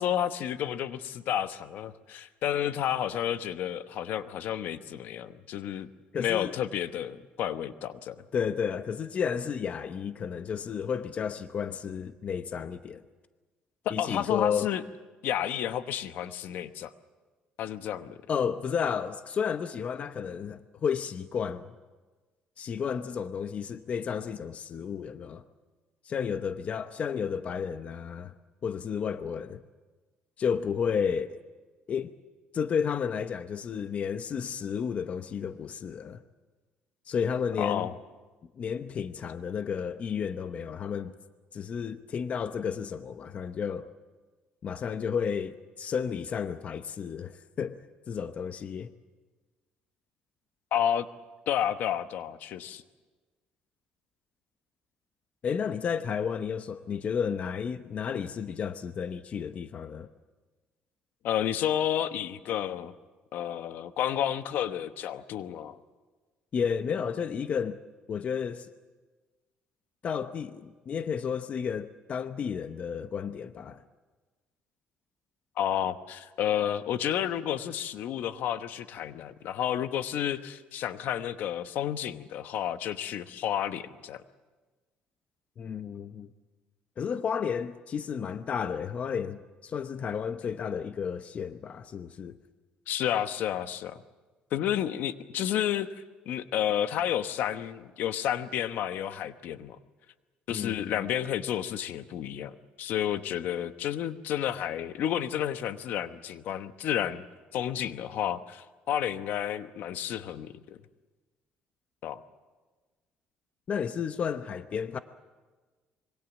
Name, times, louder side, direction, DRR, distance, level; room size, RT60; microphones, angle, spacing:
voice 1, 0.0-5.9 6.2-8.2 13.8-14.8 15.2-16.9 17.6-18.2 37.6-37.9 50.7-51.1 51.5-52.8 61.2-62.9 63.3-65.8 75.6-84.2 92.9-94.0 94.5-95.9 96.3-99.8 100.5-107.2 107.5-110.8 112.0-112.2, left 10 dB, 70° left, 1.1 m, -31 dB
voice 2, 6.1-6.5 8.3-13.0 13.9-14.7 18.3-21.7 22.6-25.4 26.0-28.3 28.6-29.6 30.4-31.4 31.9-32.1 32.5-36.2 37.1-37.9 38.6-41.1 41.5-43.9 44.6-47.8 48.1-48.9 55.4-60.1 66.5-67.8 68.1-68.7 70.0-73.8 85.6-86.3 87.0-92.4 100.5-100.9 113.7-115.0, left 7 dB, 45° left, 0.9 m, -32 dB
26.0 x 23.0 x 7.2 m
cardioid pair, 125°, 3 cm